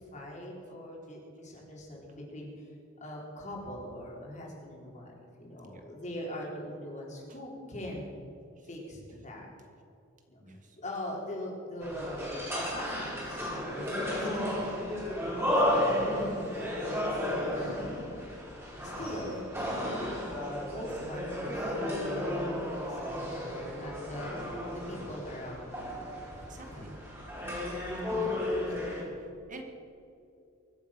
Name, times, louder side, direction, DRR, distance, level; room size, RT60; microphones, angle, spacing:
voice 1, 0.1-2.6 3.0-5.1 5.4-8.2 8.6-9.5 10.3-10.4 10.8-12.2 12.5-13.5 13.7-15.9 16.1-17.9 18.8-20.4 20.7-24.5 24.9-25.8 26.3-26.4 26.7-27.0 27.4-27.7 28.1-28.2, left 1 dB, 35° left, -2 dB, 4.1 m, -42 dB
voice 2, 10.4-10.8 24.2-24.4 26.4-26.9 27.9-28.3 28.8-29.6, right 1 dB, 40° right, 4 dB, 1.6 m, -48 dB
sound 1, 11.8-29.0, left 1 dB, 10° right, 4.1 m, -33 dB
23.5 x 8.3 x 5.9 m, 2.6 s
head